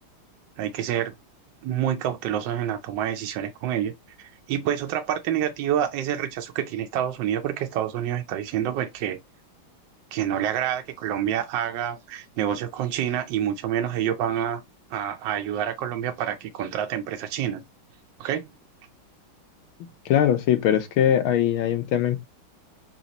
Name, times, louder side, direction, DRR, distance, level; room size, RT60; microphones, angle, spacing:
voice 1, 0.6-1.1 1.6-3.9 4.2-9.2 10.1-14.6 14.9-17.6 18.2-18.5, right 10 dB, 75° right, 1.1 m, -27 dB
voice 2, 20.1-22.2, left 10 dB, 80° left, 1.6 m, -21 dB
4.0 x 3.0 x 3.9 m
omnidirectional pair, 2.3 m